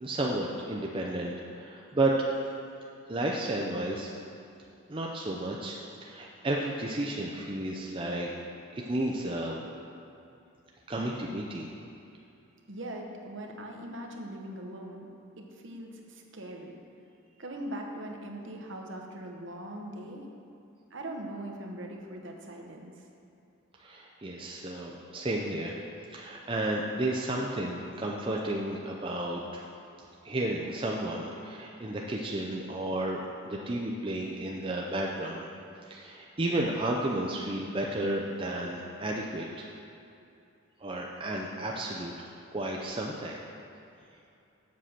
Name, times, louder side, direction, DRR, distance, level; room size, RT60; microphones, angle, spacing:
voice 1, 0.0-2.1 3.1-4.1 4.9-8.3 8.8-9.6 10.9-11.7 23.8-25.8 26.1-29.6 30.2-35.5 35.9-39.7 40.8-42.1 42.5-43.4, right 1 dB, 25° right, -2 dB, 0.5 m, -32 dB
voice 2, 12.7-15.1 15.4-16.8 17.4-20.2 20.9-22.9, right 1 dB, 55° right, 1 dB, 1.0 m, -41 dB
7.5 x 6.5 x 5.8 m, 2.7 s
head